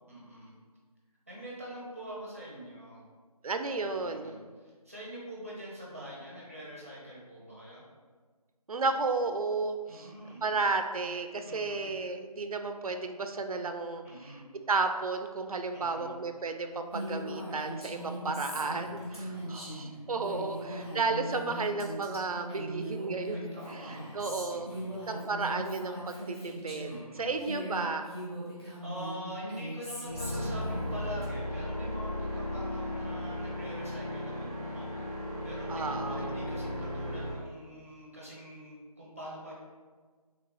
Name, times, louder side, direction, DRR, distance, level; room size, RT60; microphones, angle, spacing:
voice 1, 0.1-0.6 1.3-3.0 4.0-7.8 9.9-10.4 11.4-11.9 14.0-14.4 15.7-16.1 17.9-20.9 23.3-25.0 26.8-27.3 28.8-35.1 35.4-39.5, equal, 20° right, -5 dB, 0.7 m, -44 dB
voice 2, 3.4-4.4 8.7-10.1 10.4-14.0 14.7-23.4 23.7-23.8 24.1-24.7 25.1-26.9 27.2-28.1 35.7-36.3, right 3 dB, 65° right, 7 dB, 0.4 m, -33 dB
Female speech woman speaking, 16.9-27.0 27.4-31.2, equal, 40° left, 1.2 m, -40 dB
sound 1, 30.0-37.3, left 1 dB, ahead, 1.3 m, -36 dB
3.6 x 3.3 x 3.2 m, 1.5 s
figure-of-eight pair, 175°, 20 cm